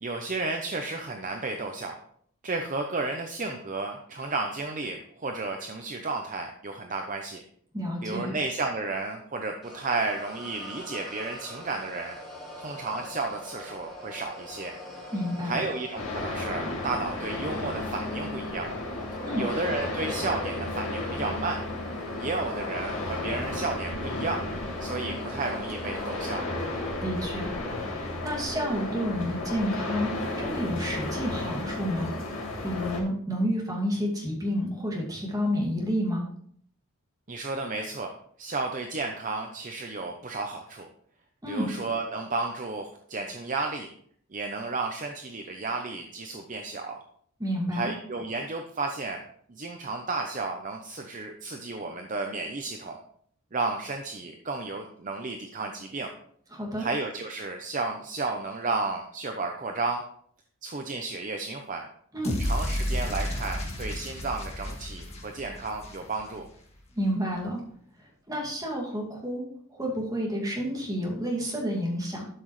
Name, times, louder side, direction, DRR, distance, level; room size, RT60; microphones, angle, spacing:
voice 1, 0.0-1.9 2.4-7.4 8.0-12.2 12.6-14.7 15.4-18.7 19.4-21.6 22.2-24.4 24.8-26.4 37.3-38.1 38.4-40.9 41.5-43.9 44.3-47.0 47.7-49.2 49.5-53.0 53.5-56.1 56.8-60.0 60.6-61.9 62.4-66.4, right 3 dB, 35° right, 3 dB, 0.7 m, -32 dB
voice 2, 7.7-8.4 15.1-15.6 19.2-19.5 27.0-27.5 27.8-30.1 30.4-36.3 41.4-41.7 47.4-48.0 56.5-56.9 62.1-62.4 66.9-67.6 68.3-69.5 69.7-72.3, equal, 15° right, -3 dB, 2.3 m, -30 dB
sound 1, 9.6-27.9, left 1 dB, ahead, 3.2 m, -43 dB
sound 2, 16.0-33.0, left 2 dB, 65° left, 2.6 m, -33 dB
sound 3, 62.2-66.5, left 1 dB, 30° left, 1.7 m, -32 dB
12.0 x 6.0 x 3.2 m, 0.63 s
head